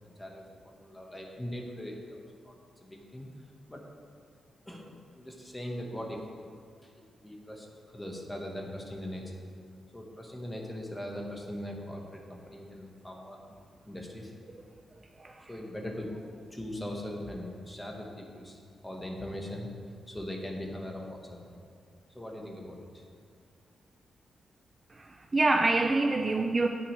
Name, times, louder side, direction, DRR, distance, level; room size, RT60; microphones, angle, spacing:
voice 1, 0.0-3.8 4.7-6.3 6.8-6.9 7.2-7.7 7.9-9.4 9.9-13.4 13.8-14.3 15.5-16.1 16.5-18.6 18.8-19.7 20.1-21.6 22.1-23.0, left 1 dB, 10° left, 0 dB, 1.4 m, -40 dB
voice 2, 15.2-15.5 24.9-26.7, right 2 dB, 25° right, 3 dB, 0.4 m, -26 dB
17.0 x 6.2 x 3.3 m, 2.1 s
wide cardioid pair, 130°, 0 cm